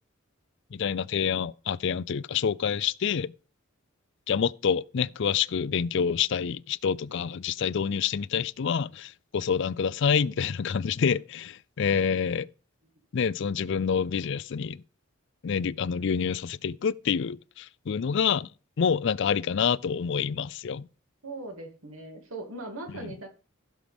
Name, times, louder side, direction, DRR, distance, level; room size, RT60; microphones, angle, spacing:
voice 1, 0.7-3.3 4.3-12.5 13.1-14.8 15.4-18.5 18.8-20.9 23.0-23.1, left 6 dB, 55° left, 0.4 m, -27 dB
voice 2, 21.2-23.3, right 2 dB, 80° right, 2.6 m, -39 dB
15.5 x 6.4 x 3.5 m
head